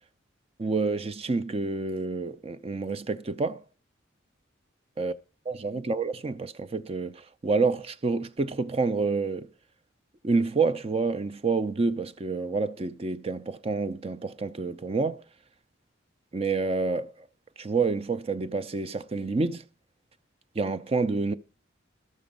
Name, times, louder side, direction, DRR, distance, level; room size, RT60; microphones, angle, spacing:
voice 1, 0.6-3.6 5.0-5.2 5.5-9.5 10.2-15.2 16.3-17.3 17.6-19.6 20.5-21.3, right 4 dB, 30° right, 0.5 m, -28 dB
12.0 x 7.0 x 5.2 m
head